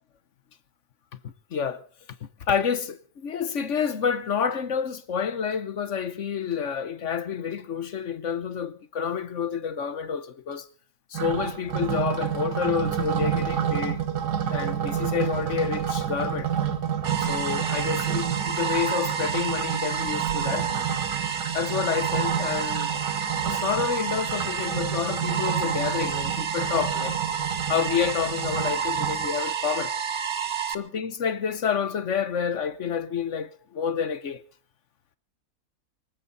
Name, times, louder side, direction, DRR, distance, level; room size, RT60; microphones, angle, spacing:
voice 1, 1.2-1.8 2.5-10.7 11.1-14.0 14.5-16.5 17.2-20.7 21.5-23.0 23.5-27.2 27.7-29.9 30.7-34.4, left 7 dB, 55° left, 1.2 m, -29 dB
sound 1, 11.1-29.3, right 8 dB, 90° right, 1.8 m, -30 dB
sound 2, 17.0-30.7, right 7 dB, 40° right, 0.9 m, -30 dB
24.5 x 14.5 x 4.0 m
omnidirectional pair, 1.7 m